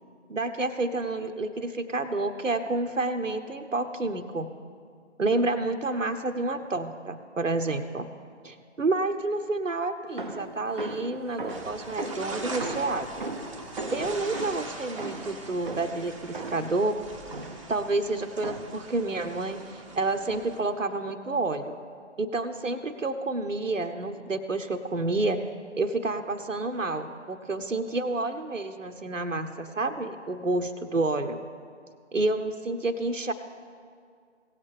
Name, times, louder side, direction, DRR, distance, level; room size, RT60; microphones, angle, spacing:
voice 1, 0.3-4.5 5.2-8.1 8.4-13.2 13.9-17.0 17.7-21.8 22.2-25.5 25.8-31.4 32.1-33.3, right 2 dB, 90° right, 6 dB, 0.9 m, -29 dB
sound 1, 10.2-16.8 17.3-17.8 18.4-18.9, right 2 dB, 45° right, 0.7 m, -38 dB
sound 2, 11.5-20.6, right 2 dB, 25° right, 1.1 m, -42 dB
17.5 x 7.4 x 3.3 m, 2.2 s
figure-of-eight pair, 155°, 37 cm